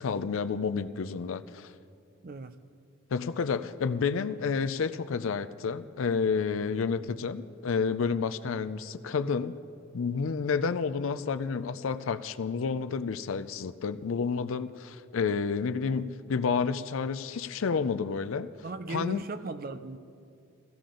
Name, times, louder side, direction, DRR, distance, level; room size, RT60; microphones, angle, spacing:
voice 1, 0.0-1.7 3.1-9.5 9.9-18.5 18.9-19.2, left 5 dB, 75° left, 11 dB, 0.4 m, -30 dB
voice 2, 2.2-2.6 18.6-20.0, right 3 dB, 45° right, 11 dB, 0.5 m, -37 dB
16.0 x 15.5 x 3.8 m, 2.4 s
head